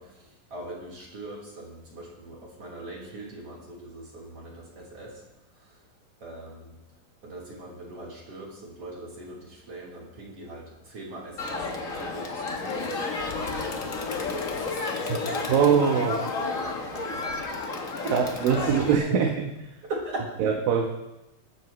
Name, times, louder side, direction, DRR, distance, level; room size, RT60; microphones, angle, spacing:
voice 1, 0.0-5.9 6.2-6.8 7.2-15.8 16.4-17.7 18.0-18.8 19.1-19.2 19.8-20.3, right 1 dB, 45° right, -4 dB, 5.0 m, -40 dB
Crowd, 11.4-18.9, left 3 dB, 50° left, 0.9 m, -32 dB
sound 1, 12.5-17.2, left 9 dB, 65° left, 1.8 m, -39 dB
voice 2, 15.5-16.2 18.1-19.3 20.4-20.9, right 7 dB, 80° right, 1 dB, 2.9 m, -22 dB
23.0 x 14.0 x 3.2 m, 0.94 s
omnidirectional pair, 3.9 m